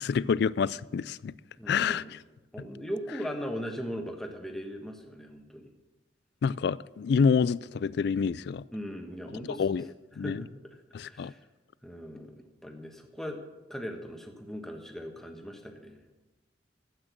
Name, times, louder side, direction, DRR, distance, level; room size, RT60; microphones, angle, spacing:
voice 1, 0.0-1.3 1.7-2.2 6.4-8.6 9.5-9.8 10.2-10.4 10.9-11.3, left 6 dB, 60° left, 0.3 m, -27 dB
voice 2, 1.6-2.1 2.5-5.7 8.7-9.6 10.2-11.4 11.8-13.4 13.7-16.0, equal, ahead, 1.3 m, -39 dB
12.5 x 8.8 x 6.1 m
head